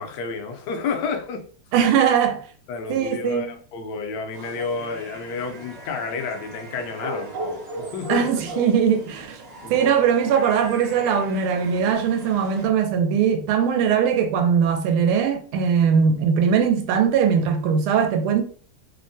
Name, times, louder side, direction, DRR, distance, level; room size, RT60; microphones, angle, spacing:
voice 1, 0.0-1.4 2.7-8.3 9.6-9.9, left 5 dB, 75° left, 1.0 m, -30 dB
voice 2, 1.7-2.4 2.9-3.5 8.1-9.4 9.7-18.4, right 7 dB, 85° right, 1.4 m, -20 dB
sound 1, 4.3-12.6, right 1 dB, 55° right, 0.9 m, -37 dB
3.5 x 2.1 x 2.6 m
omnidirectional pair, 2.3 m